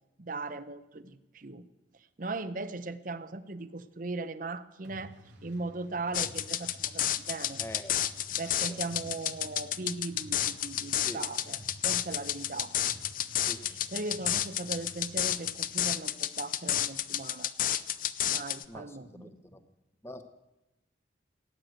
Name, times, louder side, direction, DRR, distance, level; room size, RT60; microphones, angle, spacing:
voice 1, 0.2-1.6 2.2-5.1 5.4-7.6 8.4-12.8 13.9-17.5 18.3-19.3, right 3 dB, 45° right, 13 dB, 0.8 m, -38 dB
sound 1, 4.8-15.6, equal, 90° right, 2.9 m, -52 dB
sound 2, 6.1-18.6, left 11 dB, 50° left, 0.5 m, -31 dB
voice 2, 7.6-8.0 8.6-8.8 11.0-11.3 13.3-13.6 18.7-19.6 20.0-20.2, left 1 dB, 15° left, 9 dB, 1.0 m, -45 dB
17.0 x 9.6 x 8.0 m, 0.97 s
head